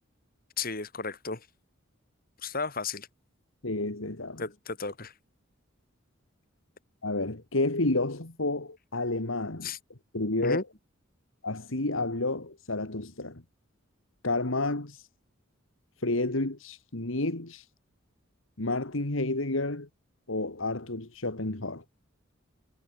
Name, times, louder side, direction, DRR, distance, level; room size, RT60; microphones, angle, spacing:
voice 1, 0.6-1.5 2.4-3.1 4.4-5.1 9.6-9.8 10.4-10.6, left 4 dB, 45° left, 3.6 m, -33 dB
voice 2, 3.6-4.4 7.0-9.7 10.1-10.6 11.4-13.4 14.2-15.0 16.0-17.6 18.6-19.9 20.3-21.8, left 2 dB, 75° left, 2.3 m, -30 dB
head